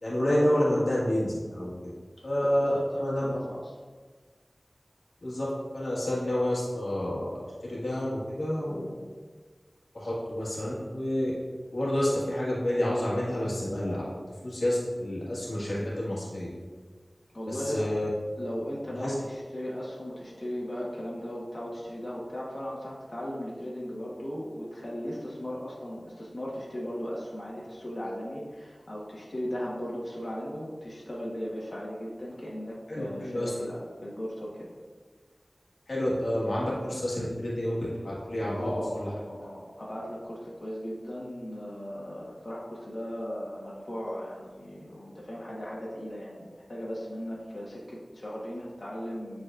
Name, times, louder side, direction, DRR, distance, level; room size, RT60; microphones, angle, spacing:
voice 1, 0.0-1.9 2.2-3.3 5.2-5.5 5.7-7.3 7.6-8.9 9.9-11.3 11.7-14.0 14.4-16.5 17.5-18.1 19.0-19.1 32.9-33.5 35.9-39.1, left 1 dB, 90° left, -7 dB, 1.6 m, -29 dB
voice 2, 2.5-3.6 17.3-17.9 18.4-34.7 38.5-49.4, equal, 45° left, -6 dB, 1.3 m, -37 dB
9.2 x 4.1 x 2.5 m, 1.5 s
wide cardioid pair, 55°, 0 cm